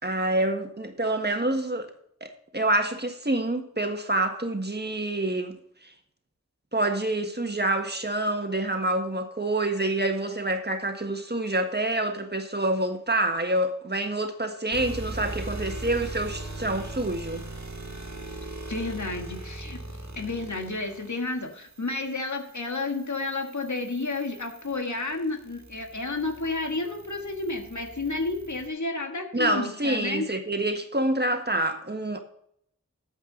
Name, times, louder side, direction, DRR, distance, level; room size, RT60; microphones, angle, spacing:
voice 1, 0.0-1.9 2.2-5.6 5.8-5.9 6.7-17.4 29.3-32.2, right 1 dB, 35° right, 1.5 m, -27 dB
sound 1, 14.7-28.7, right 2 dB, 70° right, 2.1 m, -40 dB
voice 2, 18.7-19.8 20.1-30.3, left 3 dB, 75° left, 1.6 m, -31 dB
12.5 x 8.0 x 3.9 m
wide cardioid pair, 50°, 30 cm